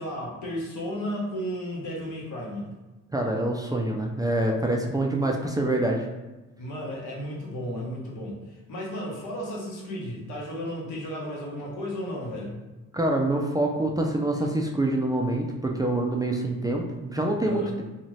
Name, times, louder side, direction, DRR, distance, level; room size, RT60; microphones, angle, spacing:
voice 1, 0.0-2.7 6.6-12.6 17.4-17.7, equal, 80° left, -2 dB, 1.0 m, -34 dB
voice 2, 3.1-6.0 12.9-17.8, right 1 dB, 15° right, 0 dB, 0.3 m, -26 dB
2.7 x 2.4 x 3.0 m, 1.1 s
cardioid pair, 90°, 30 cm